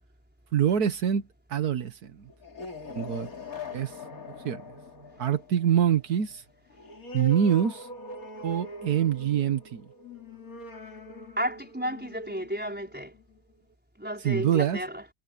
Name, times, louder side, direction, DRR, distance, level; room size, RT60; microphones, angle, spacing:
voice 1, 0.5-1.2 1.5-2.3 2.9-3.3 3.7-4.0 4.4-4.6 5.2-6.4 7.1-7.9 8.4-9.9 14.2-14.8, right 9 dB, 75° right, 1.6 m, -25 dB
sound 1, 2.3-13.5, left 2 dB, 65° left, 3.2 m, -42 dB
voice 2, 11.4-13.1 14.0-15.0, equal, 5° right, 4.9 m, -32 dB
omnidirectional pair, 1.7 m